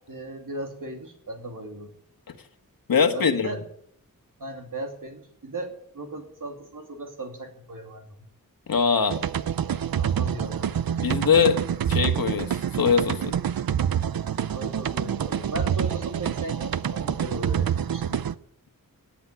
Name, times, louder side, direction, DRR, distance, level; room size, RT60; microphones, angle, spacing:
voice 1, 0.1-1.9 3.1-3.6 4.4-8.2 9.9-11.2 11.6-11.7 14.5-18.3, right 1 dB, 65° right, 4 dB, 2.8 m, -37 dB
voice 2, 2.9-3.5 8.7-9.2 11.0-11.6 11.9-13.3, left 6 dB, 80° left, 7 dB, 1.6 m, -22 dB
sound 1, 9.1-18.3, right 9 dB, 85° right, 0.7 m, -27 dB
17.5 x 8.6 x 8.6 m, 0.68 s
wide cardioid pair, 95°, 34 cm